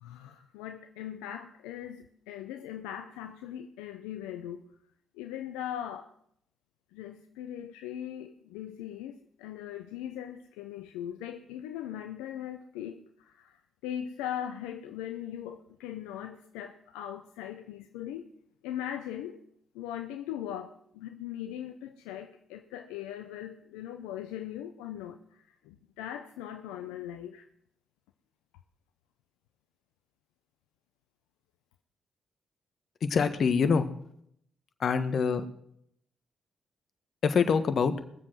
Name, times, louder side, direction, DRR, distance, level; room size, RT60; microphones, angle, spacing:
voice 1, 0.0-4.7 5.1-6.1 6.9-18.3 18.6-19.4 19.7-27.5, left 10 dB, 85° left, 7 dB, 0.6 m, -40 dB
voice 2, 33.0-33.9 34.8-35.4 37.2-37.9, left 6 dB, 60° left, 10 dB, 1.3 m, -25 dB
21.0 x 7.5 x 6.2 m, 0.72 s
hypercardioid pair, 45°, 0 cm